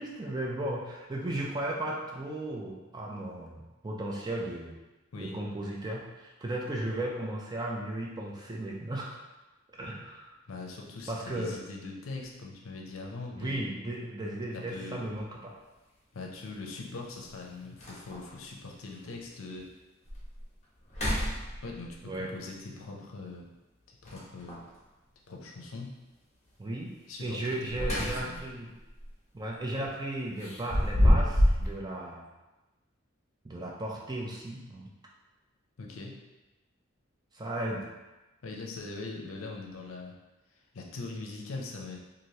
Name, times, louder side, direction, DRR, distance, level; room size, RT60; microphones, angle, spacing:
voice 1, 0.0-4.8 5.2-9.2 9.7-10.3 11.1-11.6 13.4-15.6 22.0-22.3 26.6-26.9 27.2-28.7 29.3-32.3 33.4-34.9 37.3-37.9, right 1 dB, 20° right, -2 dB, 0.4 m, -35 dB
voice 2, 10.5-13.6 14.5-15.0 16.1-19.7 21.6-23.5 24.0-24.6 25.3-25.9 27.1-27.4 27.8-28.5 35.8-36.2 38.4-40.2 40.7-42.0, left 3 dB, 75° left, 0 dB, 0.5 m, -41 dB
sound 1, 15.1-15.2 16.9-17.0 17.4-17.5 17.8-18.4 18.9-19.0 19.6-19.7 20.1-20.4 20.8-21.9 24.0-24.7 27.4-28.5 28.9-29.1 30.4-31.7, equal, 35° left, 0.8 m, -27 dB
3.1 x 2.5 x 2.7 m, 1.1 s
head